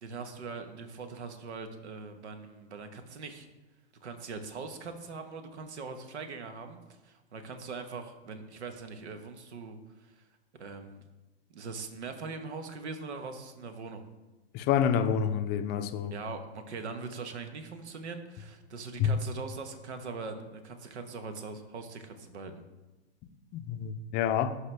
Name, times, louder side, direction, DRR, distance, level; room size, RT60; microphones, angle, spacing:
voice 1, 0.0-3.5 4.0-10.2 10.6-11.0 11.5-14.0 16.1-22.6, right 4 dB, 80° right, 1.3 m, -41 dB
voice 2, 14.5-16.1 19.0-19.1 23.5-24.6, left 8 dB, 30° left, 0.6 m, -28 dB
12.0 x 4.8 x 3.4 m
hypercardioid pair, 120°, 33 cm